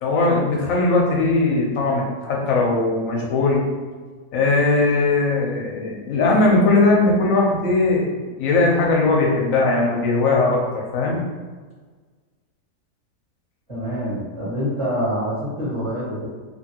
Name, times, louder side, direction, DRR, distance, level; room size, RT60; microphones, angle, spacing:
voice 1, 0.0-3.6 4.3-11.2, left 3 dB, 65° left, -2 dB, 0.9 m, -19 dB
voice 2, 13.7-16.3, equal, 30° right, -9 dB, 0.6 m, -26 dB
2.9 x 2.6 x 2.8 m, 1.4 s
omnidirectional pair, 1.9 m